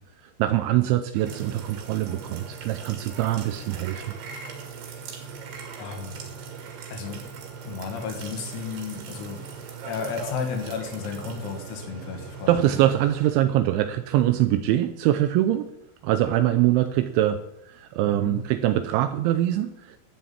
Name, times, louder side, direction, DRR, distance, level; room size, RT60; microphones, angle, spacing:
voice 1, 0.2-4.1 12.5-15.7 16.0-20.0, right 13 dB, 85° right, 8 dB, 2.7 m, -23 dB
sound 1, 1.2-13.3, right 5 dB, 60° right, 3.6 m, -39 dB
voice 2, 5.8-6.3 6.9-7.3 7.6-9.4 9.9-12.8 18.0-18.4, left 5 dB, 85° left, 3 dB, 4.8 m, -33 dB
12.0 x 7.5 x 8.6 m, 0.87 s
omnidirectional pair, 5.9 m